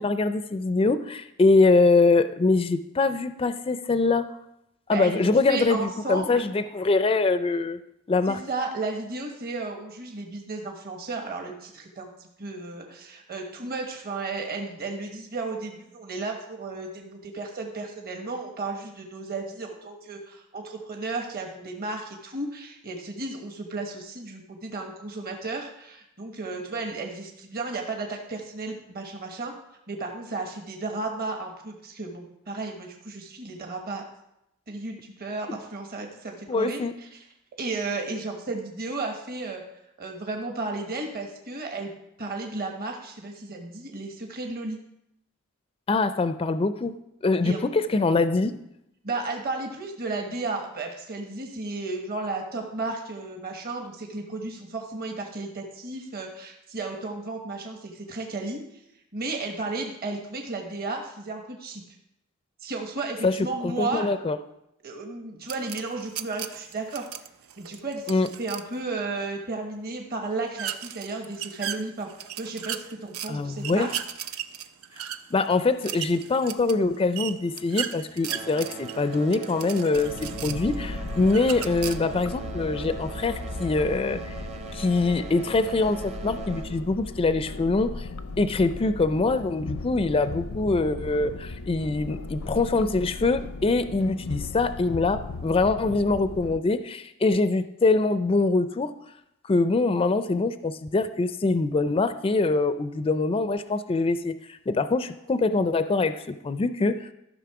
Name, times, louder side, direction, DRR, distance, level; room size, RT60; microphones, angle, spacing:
voice 1, 0.0-4.3 4.9-7.8 8.1-8.4 35.5-35.6 36.5-36.9 45.9-46.9 47.2-48.5 63.2-63.4 63.6-64.4 68.1-68.3 73.3-73.9 75.3-84.3 84.7-88.1 88.4-98.9 99.5-107.1, left 3 dB, 25° left, 11 dB, 0.4 m, -24 dB
voice 2, 4.9-6.4 8.3-29.5 29.9-34.0 34.7-37.2 37.6-39.6 40.0-41.9 42.2-44.8 47.4-47.7 49.0-58.6 59.1-61.8 62.6-64.1 64.8-67.1 67.6-72.1 72.3-73.9, right 3 dB, 45° right, 2 dB, 1.3 m, -34 dB
sound 1, 65.5-68.7 70.6-73.3 73.6-80.8 81.2-82.2, right 10 dB, 80° right, 0.6 m, -36 dB
sound 2, 76.5-77.8 78.1-88.4 89.3-89.4 90.0-90.1 90.8-90.9, right 4 dB, 30° right, 0.8 m, -41 dB
sound 3, 80.0-96.6, left 3 dB, 85° left, 0.7 m, -37 dB
13.5 x 6.3 x 4.8 m, 0.83 s
head